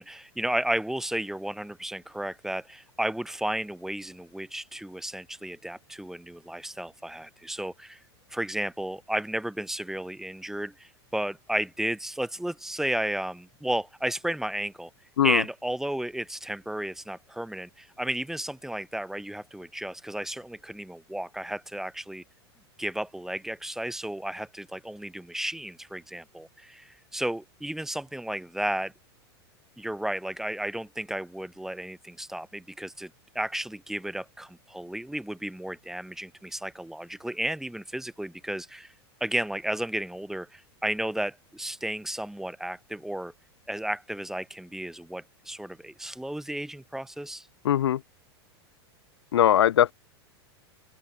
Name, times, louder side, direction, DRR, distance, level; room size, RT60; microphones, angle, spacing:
voice 1, 0.0-8.0 8.3-14.9 15.2-22.2 22.8-28.9 29.8-38.9 39.2-43.3 43.7-47.5, right 1 dB, 5° right, 5.8 m, -33 dB
voice 2, 47.6-48.0 49.3-49.9, left 11 dB, 80° left, 1.4 m, -20 dB
open air
hypercardioid pair, 105°, 14 cm